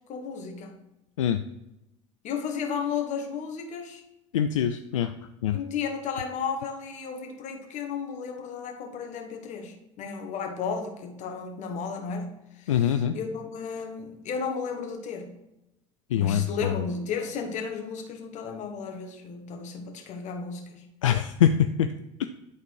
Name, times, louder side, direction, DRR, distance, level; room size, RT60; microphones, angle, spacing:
voice 1, 0.1-0.8 2.2-4.0 5.5-15.4 16.1-20.9, left 6 dB, 50° left, 3 dB, 1.7 m, -34 dB
voice 2, 4.3-5.1 5.4-5.6 12.7-13.2 16.1-16.8 21.0-21.9 22.2-22.3, left 9 dB, 80° left, 9 dB, 0.4 m, -24 dB
11.0 x 4.2 x 4.7 m, 0.92 s
figure-of-eight pair, 70°, 16 cm